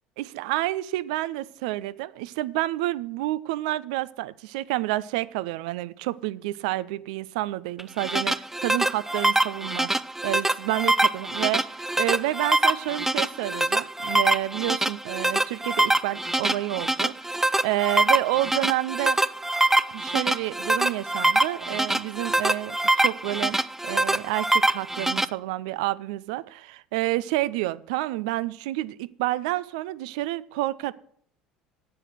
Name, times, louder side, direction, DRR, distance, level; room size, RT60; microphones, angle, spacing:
voice 1, 0.2-9.9 10.2-19.2 19.9-23.6 23.8-30.9, right 16 dB, 70° right, 18 dB, 0.5 m, -29 dB
sound 1, 7.8-25.2, right 2 dB, 10° right, 0.5 m, -24 dB
8.8 x 8.2 x 6.3 m, 0.63 s
hypercardioid pair, 65°, 4 cm